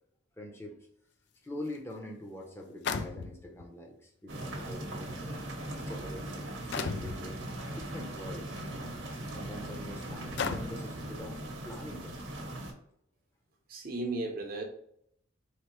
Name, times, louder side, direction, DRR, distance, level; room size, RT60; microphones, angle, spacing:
voice 1, 0.4-0.8 1.4-8.9 9.3-12.2, left 1 dB, 10° left, 0 dB, 0.8 m, -44 dB
sound 1, 1.7-1.8 2.8-3.6 4.6-4.7 5.5-5.7 6.7-7.2 8.5-8.6 9.3-9.4 10.4-10.9, left 5 dB, 55° left, 0.4 m, -34 dB
sound 2, 4.3-12.7, right 1 dB, 65° right, 1.0 m, -39 dB
voice 2, 13.7-14.6, right 2 dB, 45° right, 3 dB, 0.9 m, -35 dB
4.2 x 3.3 x 3.1 m, 0.69 s
head